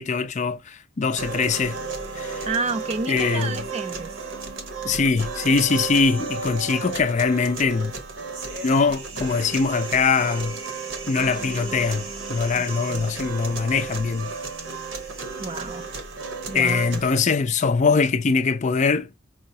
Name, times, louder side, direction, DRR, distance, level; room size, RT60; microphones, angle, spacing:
voice 1, 0.0-1.8 2.1-2.5 3.1-3.6 4.8-8.0 8.6-10.6 11.1-14.3 16.5-19.1, left 4 dB, 35° left, 0.4 m, -22 dB
sound 1, 1.2-17.2, right 4 dB, 75° right, 0.9 m, -33 dB
voice 2, 2.5-4.1 12.5-13.1 15.4-15.9 16.5-17.0, right 4 dB, 30° right, 0.4 m, -30 dB
5.5 x 2.0 x 2.7 m
head